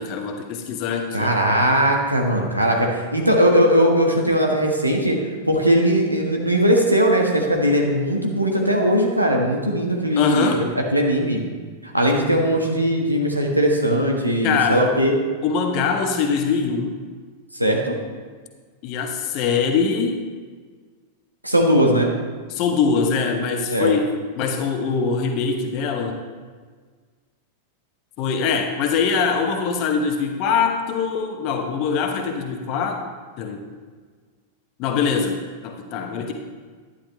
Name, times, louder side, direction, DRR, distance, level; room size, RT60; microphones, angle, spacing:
voice 1, 0.0-1.3 10.2-10.6 14.4-14.9 15.4-17.0 18.8-20.2 22.5-24.1 24.4-26.2 28.2-33.1 33.4-33.6 34.8-36.3, left 5 dB, 40° left, 4 dB, 1.0 m, -23 dB
voice 2, 1.1-5.2 5.5-10.6 10.9-11.4 11.8-15.1 17.6-17.9 21.4-22.1 23.7-23.9, equal, 85° right, 0 dB, 1.4 m, -19 dB
11.5 x 9.8 x 3.3 m, 1.5 s
figure-of-eight pair, 90°, 0 cm